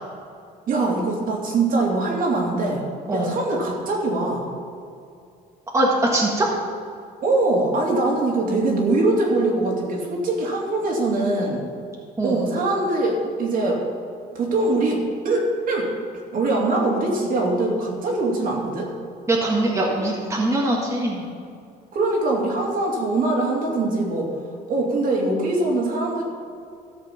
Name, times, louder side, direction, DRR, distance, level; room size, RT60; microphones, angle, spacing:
voice 1, 0.7-2.8 3.1-4.5 7.2-11.6 12.2-13.8 14.3-15.9 16.3-18.9 21.9-24.3 24.7-26.2, right 2 dB, 55° right, -1 dB, 2.6 m, -22 dB
voice 2, 5.7-6.6 12.2-12.5 19.3-21.3, right 1 dB, 15° right, -3 dB, 1.8 m, -22 dB
13.5 x 6.6 x 5.9 m, 2.4 s
cardioid pair, 110°, 17 cm